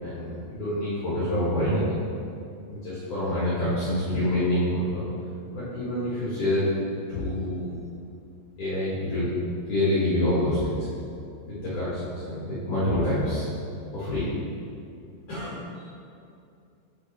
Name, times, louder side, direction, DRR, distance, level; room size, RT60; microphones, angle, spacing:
voice 1, 0.0-2.0 2.7-5.1 5.5-6.6 7.1-7.7 8.6-9.3 9.7-10.9 11.4-13.5 13.9-14.3 15.3-15.6, left 1 dB, 60° left, -12 dB, 2.1 m, -27 dB
11.0 x 3.8 x 2.9 m, 2.5 s
omnidirectional pair, 5.5 m